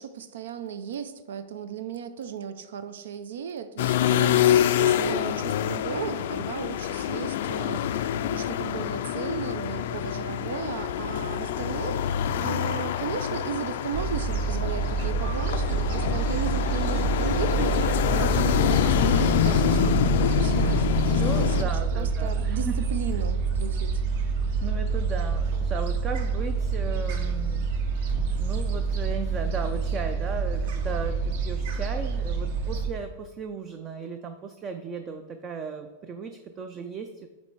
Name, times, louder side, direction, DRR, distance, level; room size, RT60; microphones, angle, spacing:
voice 1, 0.0-12.0 12.4-21.7 22.0-24.0, right 7 dB, 85° right, 10 dB, 0.5 m, -35 dB
sound 1, 3.8-21.6, left 10 dB, 65° left, 0.3 m, -26 dB
Gull seagull, 13.9-32.9, right 4 dB, 55° right, 0.9 m, -27 dB
voice 2, 21.0-22.8 23.1-23.2 24.6-27.7 28.4-37.3, right 5 dB, 20° right, 7 dB, 0.3 m, -36 dB
8.3 x 3.2 x 4.6 m, 1.2 s
supercardioid pair, 165°, 0 cm